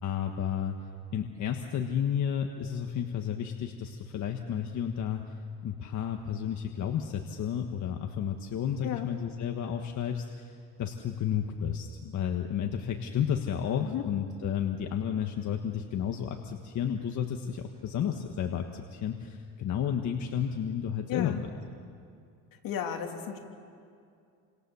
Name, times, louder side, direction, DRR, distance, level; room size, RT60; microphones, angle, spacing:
voice 1, 0.0-0.7 1.1-5.2 5.6-21.3, left 8 dB, 55° left, 4 dB, 1.5 m, -32 dB
voice 2, 21.1-21.5 22.5-23.4, left 9 dB, 70° left, 3 dB, 3.0 m, -34 dB
29.5 x 26.5 x 7.1 m, 2.4 s
cardioid pair, 140°, 35 cm